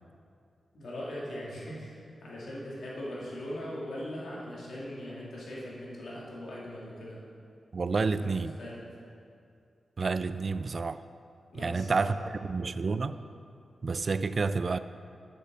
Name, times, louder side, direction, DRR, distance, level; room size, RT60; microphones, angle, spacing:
voice 1, 0.7-7.2 8.2-8.3 8.6-8.8 10.3-10.5 11.5-12.4 12.9-13.2, equal, 75° left, -6 dB, 2.7 m, -40 dB
voice 2, 7.7-8.5 10.0-11.0 11.6-13.2 13.8-14.8, right 4 dB, 50° right, 13 dB, 0.3 m, -29 dB
7.9 x 6.7 x 7.5 m, 2.4 s
cardioid pair, 80°, 0 cm